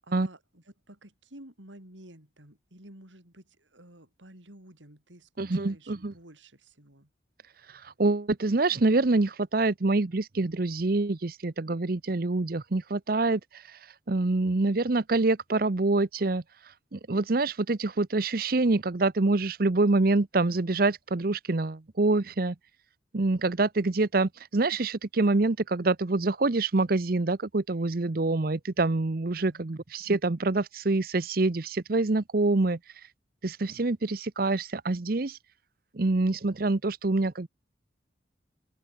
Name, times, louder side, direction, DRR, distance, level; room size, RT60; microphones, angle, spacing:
voice 1, 0.0-7.1 29.4-29.7, right 1 dB, 85° right, 7.1 m, -52 dB
voice 2, 5.4-6.1 7.7-13.8 14.1-16.4 16.9-22.5 23.1-32.8 33.4-35.4 35.9-37.5, right 2 dB, 50° right, 0.7 m, -26 dB
open air
head